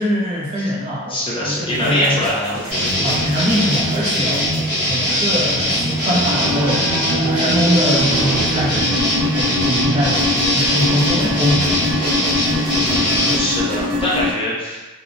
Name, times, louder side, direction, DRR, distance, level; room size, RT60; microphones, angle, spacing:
voice 1, 0.0-2.3 3.0-4.5 4.8-11.7, equal, 30° right, -5 dB, 0.5 m, -22 dB
voice 2, 1.1-2.8 12.8-14.8, equal, 25° left, -6 dB, 0.5 m, -23 dB
sound 1, 1.7-14.3, left 1 dB, 80° right, 0.6 m, -24 dB
sound 2, 2.7-13.4, equal, 50° right, 1.2 m, -21 dB
2.7 x 2.0 x 2.5 m, 1.1 s
head